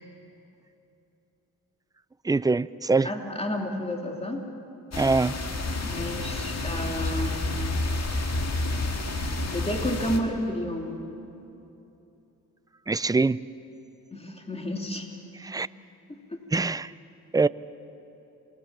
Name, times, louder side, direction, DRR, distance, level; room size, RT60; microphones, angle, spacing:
voice 1, 2.2-3.1 5.0-5.3 12.9-13.4 15.4-15.7 16.5-16.9 17.3-17.5, right 3 dB, 10° right, 17 dB, 0.5 m, -23 dB
voice 2, 3.0-4.4 5.8-7.7 9.4-11.0 14.1-15.1 16.1-16.4, equal, 15° left, 2 dB, 2.9 m, -31 dB
sound 1, 4.9-10.2, left 2 dB, 50° left, 2.2 m, -29 dB
28.0 x 19.0 x 7.4 m, 2.9 s
cardioid pair, 70°, 34 cm